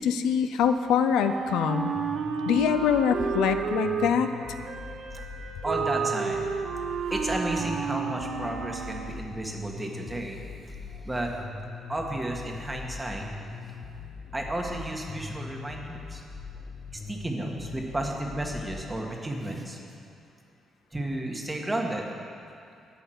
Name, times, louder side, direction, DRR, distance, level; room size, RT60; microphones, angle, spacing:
voice 1, 0.0-1.9 2.5-4.3, left 7 dB, 90° left, 9 dB, 0.5 m, -24 dB
Wind instrument woodwind instrument, 1.1-9.2, right 6 dB, 70° right, 0.9 m, -32 dB
sound 1, 2.0-18.8, left 4 dB, 45° left, 0.7 m, -42 dB
voice 2, 5.6-6.5 7.1-10.4 10.7-10.8 11.0-11.3 11.9-13.3 14.3-16.2 16.9-19.8 20.9-22.1, right 1 dB, 15° right, 1 dB, 1.6 m, -32 dB
12.0 x 5.7 x 7.9 m, 2.5 s
cardioid pair, 90°, 0 cm